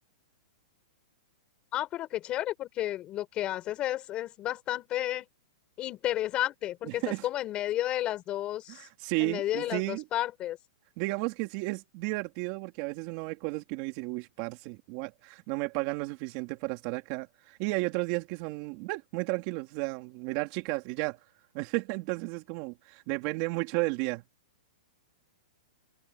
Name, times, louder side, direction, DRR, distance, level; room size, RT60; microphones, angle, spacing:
voice 1, 1.7-5.3 5.8-8.9 9.2-10.6, left 13 dB, 25° left, 4.8 m, -32 dB
voice 2, 6.8-7.3 8.7-10.0 11.0-21.2 21.5-24.2, right 24 dB, 35° right, 3.7 m, -33 dB
hypercardioid pair, 160°, 4 cm